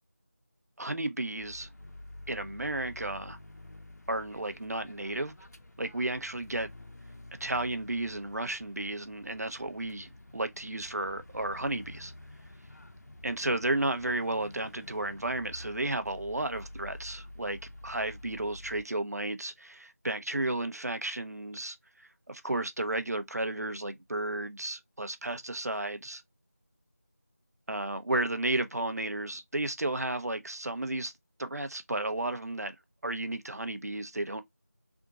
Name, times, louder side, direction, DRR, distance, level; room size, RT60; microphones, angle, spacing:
voice 1, 0.8-1.7 2.3-3.4 4.1-5.3 5.8-6.7 7.4-12.1 13.2-26.2 27.7-31.1 31.4-32.8 33.0-34.4, right 2 dB, 70° right, 0.8 m, -33 dB
sound 1, 1.4-18.8, left 1 dB, 85° left, 0.8 m, -49 dB
3.6 x 2.4 x 3.7 m
figure-of-eight pair, 175°, 9 cm